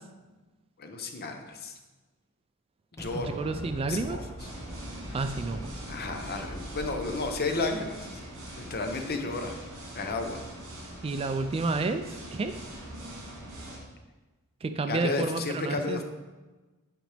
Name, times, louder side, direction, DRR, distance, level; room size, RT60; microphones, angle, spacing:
voice 1, 0.8-1.8 2.9-3.4 3.9-4.5 5.9-8.1 8.5-9.5 9.9-10.4 14.9-16.0, left 3 dB, 45° left, 5 dB, 0.7 m, -32 dB
Explosion, 3.0-9.0, equal, 15° left, 1.3 m, -43 dB
voice 2, 3.1-4.2 5.1-5.7 11.0-12.0 12.3-12.5 14.6-16.0, right 3 dB, 25° right, 8 dB, 0.3 m, -30 dB
sound 1, 4.4-13.8, right 1 dB, 65° right, 2.1 m, -43 dB
9.1 x 5.1 x 3.3 m, 1.2 s
head